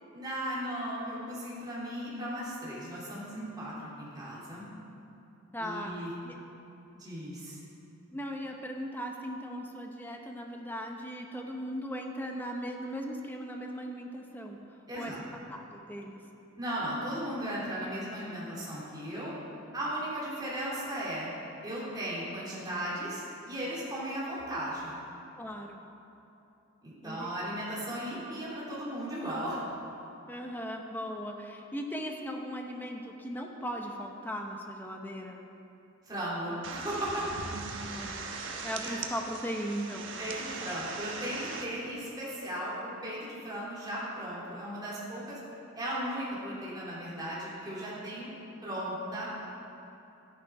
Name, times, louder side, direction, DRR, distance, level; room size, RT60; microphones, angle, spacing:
voice 1, 0.1-4.7 5.6-6.1 7.0-7.6 14.9-15.2 16.6-19.3 19.7-21.3 21.6-25.0 26.8-29.6 36.0-37.3 38.8-39.0 40.2-45.4 45.7-48.3 48.6-49.5, right 1 dB, 20° right, -7 dB, 3.4 m, -36 dB
voice 2, 5.5-6.4 8.1-14.6 14.9-15.1 15.5-16.2 25.4-25.8 27.0-27.3 30.3-35.5 37.8-38.3 38.6-40.2, equal, 10° left, 2 dB, 0.8 m, -38 dB
sound 1, 36.6-41.7, right 4 dB, 65° right, 1.2 m, -39 dB
12.5 x 11.0 x 4.8 m, 2.8 s
head